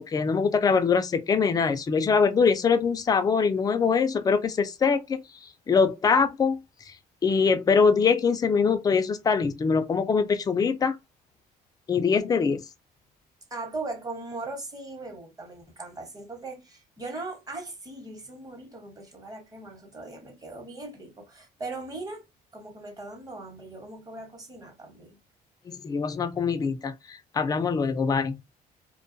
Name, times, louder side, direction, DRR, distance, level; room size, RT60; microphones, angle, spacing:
voice 1, 0.1-5.2 5.7-6.6 7.2-11.0 11.9-12.6 25.7-28.4, left 5 dB, 20° left, 0.4 m, -23 dB
voice 2, 13.5-22.2 22.5-25.2, right 2 dB, 20° right, 1.0 m, -39 dB
2.3 x 2.2 x 2.5 m
cardioid pair, 110°, 17 cm